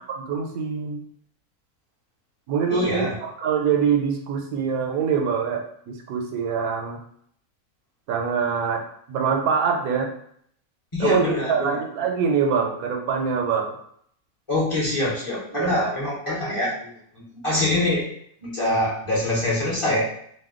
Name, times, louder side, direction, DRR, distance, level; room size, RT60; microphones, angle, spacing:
voice 1, 0.2-1.0 2.5-7.0 8.1-8.8 9.1-10.1 11.0-13.8 15.5-15.9, right 6 dB, 80° right, 3 dB, 1.1 m, -24 dB
voice 2, 2.7-3.2 10.9-11.8 14.5-18.1 18.4-20.1, left 1 dB, 30° left, -7 dB, 0.7 m, -24 dB
2.6 x 2.2 x 3.5 m, 0.66 s
omnidirectional pair, 1.5 m